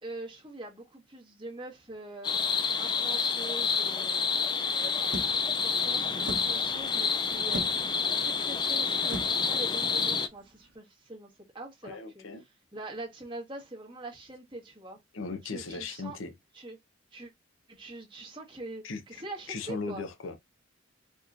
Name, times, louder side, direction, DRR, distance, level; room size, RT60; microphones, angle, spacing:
voice 1, 0.0-4.2 4.7-5.2 5.6-7.7 8.2-12.2 12.7-15.0 15.5-16.2 16.5-16.8 17.1-17.3 17.7-20.0, right 2 dB, 25° right, 1.4 m, -43 dB
sound 1, 2.2-10.3, left 5 dB, 20° left, 0.3 m, -28 dB
sound 2, 5.1-10.7, right 1 dB, 65° right, 1.2 m, -42 dB
voice 2, 11.8-12.4 15.1-16.3 18.8-19.2 19.5-20.4, left 4 dB, 80° left, 0.8 m, -37 dB
4.5 x 3.0 x 2.5 m
head